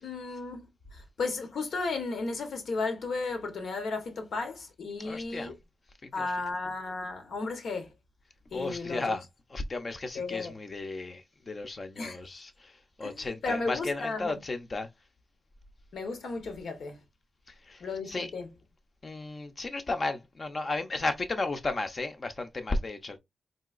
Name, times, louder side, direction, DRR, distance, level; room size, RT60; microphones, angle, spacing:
voice 1, 0.0-5.5 6.1-7.9 8.5-9.2 10.1-10.5 12.0-12.2 13.0-14.4 15.9-17.0 17.8-18.5, left 3 dB, 80° left, 0.9 m, -34 dB
voice 2, 5.0-5.5 6.0-6.3 8.5-9.2 9.5-12.7 13.0-14.9 17.7-17.8 18.1-18.3 19.0-23.2, left 2 dB, 35° left, 0.5 m, -34 dB
3.8 x 2.8 x 2.4 m
wide cardioid pair, 155°, 0 cm